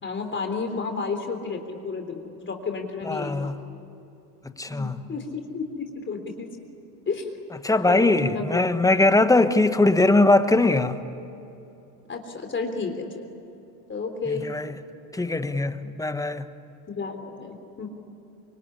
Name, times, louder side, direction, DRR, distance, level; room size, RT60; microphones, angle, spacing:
voice 1, 0.0-3.5 4.7-6.5 7.1-7.3 7.9-8.6 9.4-9.5 12.1-13.2 13.9-14.5 16.9-17.9, left 4 dB, 25° left, 3.5 m, -32 dB
voice 2, 3.1-3.5 4.6-5.0 7.6-11.0 14.4-14.7 15.1-16.5, left 2 dB, 5° left, 1.3 m, -21 dB
25.0 x 24.0 x 9.9 m
supercardioid pair, 100°, 48 cm